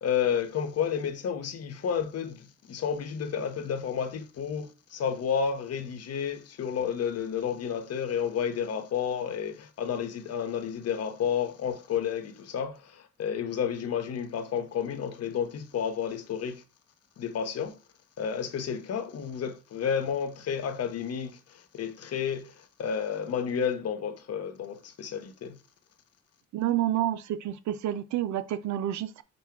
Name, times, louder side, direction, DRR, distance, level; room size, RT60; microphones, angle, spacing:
voice 1, 0.0-16.6 17.2-17.8 18.2-25.6, left 7 dB, 55° left, 0.8 m, -31 dB
voice 2, 26.5-29.2, right 12 dB, 70° right, 0.5 m, -29 dB
5.3 x 2.2 x 4.4 m
cardioid pair, 90°, 30 cm